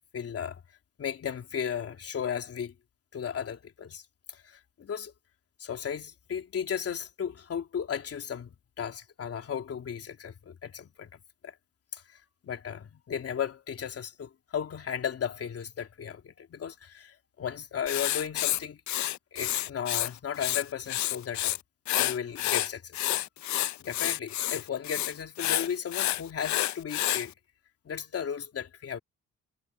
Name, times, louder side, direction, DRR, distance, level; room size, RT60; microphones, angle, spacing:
voice 1, 0.1-0.6 1.0-2.7 3.1-4.0 4.3-5.1 5.6-11.5 11.9-18.8 19.3-21.5 22.0-23.0 23.4-23.5 23.8-27.3 27.8-29.0, left 8 dB, 50° left, 3.3 m, -35 dB
Writing, 17.9-20.1 20.4-21.6 21.9-27.3, left 14 dB, 70° left, 0.6 m, -29 dB
cardioid pair, 90°, 30 cm